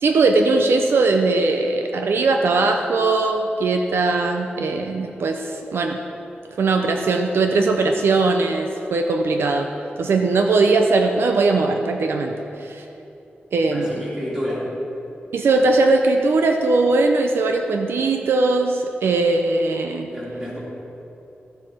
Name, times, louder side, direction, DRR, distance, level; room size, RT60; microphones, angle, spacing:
voice 1, 0.0-6.0 6.6-9.7 10.0-12.8 13.5-14.0 15.3-20.1, right 3 dB, 80° right, 4 dB, 0.6 m, -20 dB
voice 2, 13.7-14.7 20.1-20.6, equal, 20° right, -6 dB, 2.6 m, -29 dB
13.5 x 7.6 x 4.4 m, 2.9 s
wide cardioid pair, 170°, 4 cm